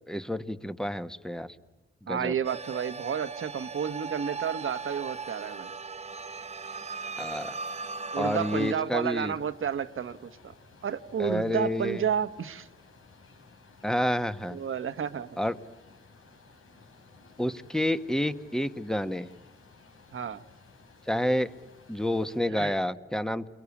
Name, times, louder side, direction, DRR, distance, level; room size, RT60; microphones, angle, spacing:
voice 1, 0.1-1.5 2.0-2.4 7.2-7.5 8.2-9.3 11.2-12.1 13.8-14.6 15.4-15.6 17.4-19.3 21.1-21.5 21.9-23.5, left 1 dB, 5° left, 10 dB, 1.3 m, -29 dB
voice 2, 2.1-5.7 8.1-10.5 10.8-12.7 14.5-15.4 20.1-20.4 22.5-22.7, right 8 dB, 75° right, 11 dB, 1.3 m, -31 dB
sound 1, 2.4-8.7, right 4 dB, 30° right, 0.9 m, -38 dB
sound 2, 8.6-22.4, left 4 dB, 85° left, 4.8 m, -56 dB
30.0 x 23.0 x 8.5 m, 1.1 s
wide cardioid pair, 95°, 21 cm